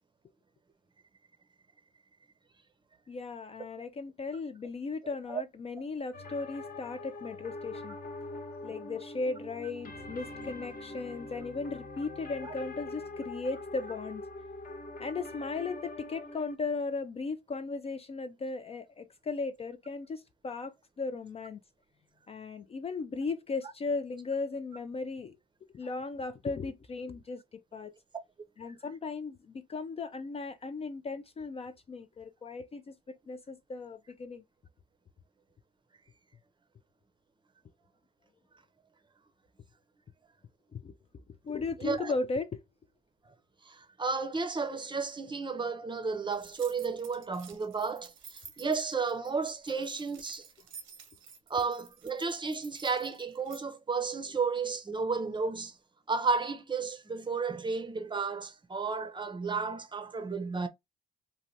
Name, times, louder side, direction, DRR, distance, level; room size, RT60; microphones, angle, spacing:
voice 1, 3.1-8.0 8.6-14.2 15.0-21.6 22.3-25.4 25.7-27.9 28.6-34.4 40.7-40.9 41.4-42.6, left 3 dB, 30° left, 0.3 m, -36 dB
sound 1, 6.1-16.6, left 2 dB, 45° left, 0.9 m, -43 dB
voice 2, 41.8-42.1 43.3-43.4 43.6-50.5 51.5-55.8 56.1-60.7, right 4 dB, 25° right, 0.6 m, -33 dB
sound 2, 46.3-53.6, right 7 dB, 85° right, 0.9 m, -52 dB
3.1 x 2.1 x 2.6 m
cardioid pair, 90°, 20 cm